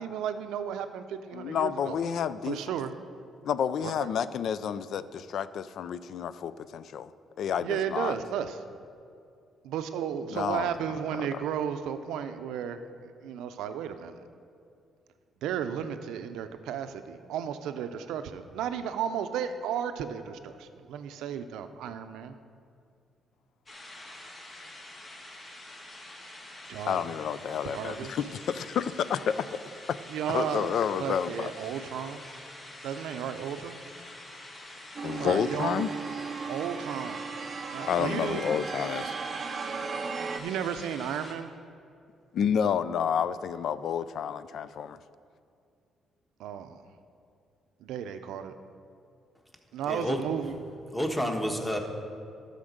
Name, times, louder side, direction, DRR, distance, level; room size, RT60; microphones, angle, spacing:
voice 1, 0.0-2.0 2.5-2.9 3.8-4.1 7.6-8.6 9.6-14.2 15.4-22.4 26.7-27.0 27.6-28.2 30.1-30.7 31.0-32.3 32.8-33.8 35.1-35.9 36.5-37.2 37.7-38.4 40.4-41.5 46.4-46.8 47.8-48.5 49.7-50.5, right 8 dB, 90° right, 9 dB, 0.5 m, -34 dB
voice 2, 1.3-2.6 3.4-7.1 7.4-8.2 10.3-10.7 11.3-11.4 26.8-29.5 30.3-31.5 35.0-35.9 37.9-39.1 42.3-45.0, left 8 dB, 70° left, 14 dB, 0.4 m, -30 dB
sound 1, 23.7-41.3, left 1 dB, 35° left, 2.1 m, -46 dB
sound 2, 35.0-40.4, right 5 dB, 45° right, 0.6 m, -36 dB
voice 3, 49.8-50.2 50.9-51.8, equal, 10° left, 3 dB, 1.3 m, -29 dB
12.0 x 5.1 x 6.6 m, 2.4 s
cardioid pair, 90°, 0 cm